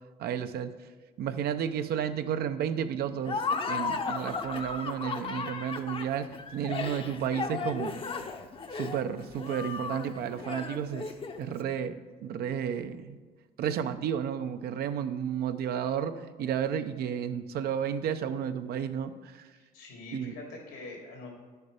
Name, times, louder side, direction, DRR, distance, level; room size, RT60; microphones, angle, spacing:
voice 1, 0.2-0.7 1.2-6.3 6.5-8.0 8.7-11.1 11.3-12.0 12.2-13.2 13.6-19.5 20.1-20.3, right 8 dB, 65° right, 9 dB, 0.7 m, -32 dB
Laughter, 3.2-11.5, left 4 dB, 30° left, 0.7 m, -35 dB
voice 2, 19.5-21.3, left 2 dB, 90° left, 0 dB, 3.0 m, -44 dB
10.0 x 6.9 x 4.9 m, 1.5 s
cardioid pair, 110°, 17 cm